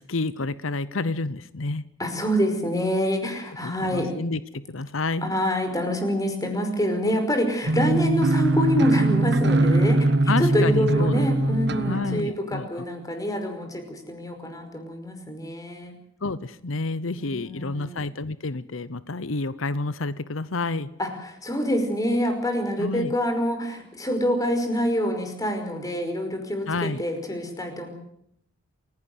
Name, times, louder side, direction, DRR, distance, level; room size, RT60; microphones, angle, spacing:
voice 1, 0.0-1.8 3.6-5.3 10.3-11.6 11.9-12.8 16.2-20.9 22.8-23.1 26.7-27.0, left 3 dB, 85° left, 16 dB, 0.9 m, -29 dB
voice 2, 2.0-4.1 5.2-15.9 17.2-18.0 21.0-27.9, equal, 20° left, 6 dB, 5.3 m, -26 dB
sound 1, 7.6-12.2, right 2 dB, 60° right, 1.4 m, -21 dB
28.0 x 16.5 x 8.0 m, 0.73 s
head